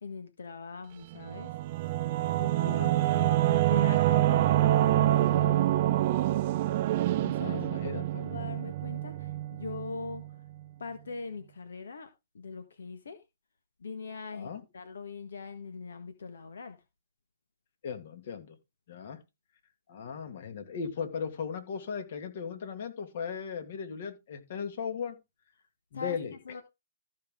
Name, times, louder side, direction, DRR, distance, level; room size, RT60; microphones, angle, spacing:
voice 1, 0.0-1.5 2.4-6.0 7.2-10.4 10.8-12.1 12.3-13.2 13.8-16.8 25.9-26.6, left 4 dB, 85° left, 1.5 m, -42 dB
Singing / Musical instrument, 1.1-10.3, right 14 dB, 45° right, 0.7 m, -26 dB
voice 2, 2.6-2.9 7.3-8.0 14.3-14.6 17.8-18.6 18.9-19.2 19.9-25.2 25.9-26.3, left 6 dB, 55° left, 2.4 m, -37 dB
14.0 x 5.7 x 3.7 m
hypercardioid pair, 140°, 0 cm